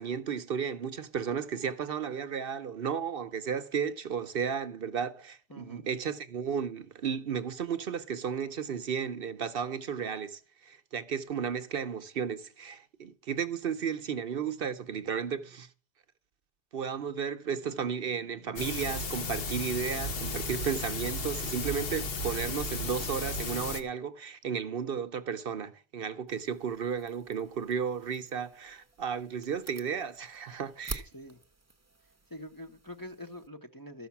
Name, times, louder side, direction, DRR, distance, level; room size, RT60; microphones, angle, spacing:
voice 1, 0.0-15.7 16.7-31.1, right 7 dB, 60° right, 0.9 m, -34 dB
voice 2, 5.5-5.9 31.1-31.4 32.3-34.1, left 1 dB, 20° left, 0.7 m, -45 dB
sound 1, 18.6-23.8, left 3 dB, 60° left, 1.2 m, -34 dB
sound 2, 26.3-33.5, right 3 dB, 15° right, 0.8 m, -48 dB
13.0 x 5.7 x 7.1 m
omnidirectional pair, 1.1 m